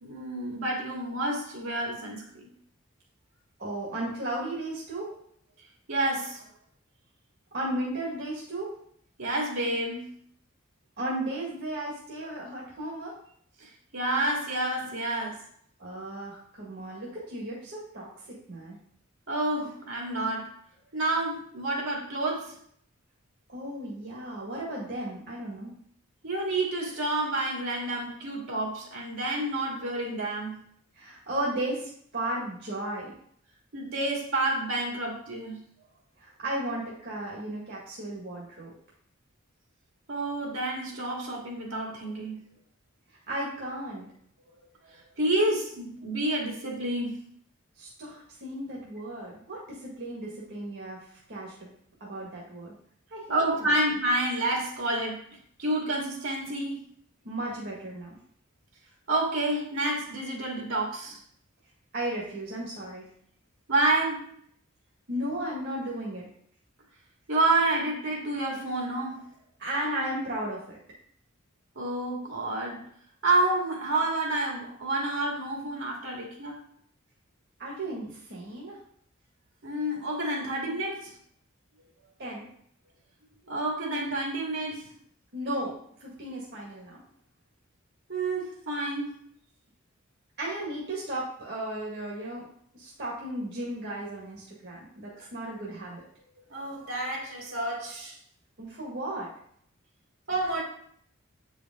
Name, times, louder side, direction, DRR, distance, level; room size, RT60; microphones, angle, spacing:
voice 1, 0.0-2.5 5.9-6.4 9.2-10.0 13.6-15.4 19.3-20.5 20.9-22.5 26.2-30.6 33.7-35.6 40.1-42.4 44.9-47.2 53.3-55.2 55.6-56.8 59.1-61.2 63.7-64.3 67.3-69.2 71.8-72.8 73.2-76.6 79.6-81.1 83.5-84.9 88.1-89.2 95.2-95.3 96.5-98.1 100.3-100.6, right 2 dB, 75° right, -2 dB, 2.4 m, -29 dB
voice 2, 3.6-5.1 7.5-8.8 11.0-13.1 15.8-18.8 23.5-25.7 31.0-33.1 36.2-38.7 43.3-44.1 47.8-51.7 52.0-52.7 53.1-53.7 57.2-58.2 61.9-63.1 65.1-66.3 69.6-70.8 77.6-78.8 82.2-82.5 85.3-87.0 90.4-92.5 92.7-96.0 98.6-99.3, right 1 dB, 55° right, -5 dB, 1.9 m, -35 dB
8.3 x 5.1 x 3.8 m, 0.64 s
head